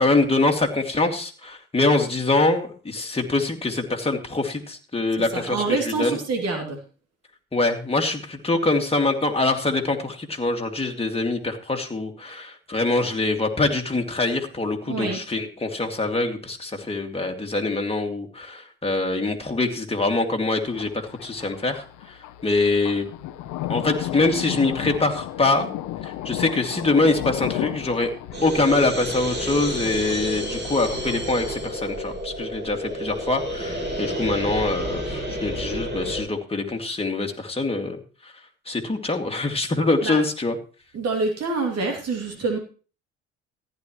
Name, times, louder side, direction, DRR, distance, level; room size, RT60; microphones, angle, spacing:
voice 1, 0.0-6.2 7.5-20.9 21.2-22.2 22.4-23.1 23.7-25.7 26.0-28.1 28.4-38.0 38.7-40.5, left 2 dB, 15° left, 3 dB, 2.4 m, -24 dB
voice 2, 5.3-6.8 14.9-15.2 40.0-40.2 40.9-42.6, right 3 dB, 50° right, 3 dB, 2.9 m, -26 dB
Thunder, 20.7-32.0, left 13 dB, 65° left, 1.0 m, -34 dB
sound 1, 28.3-36.2, equal, 30° right, 6.8 m, -30 dB
15.0 x 11.0 x 3.1 m, 0.36 s
hypercardioid pair, 60°, 33 cm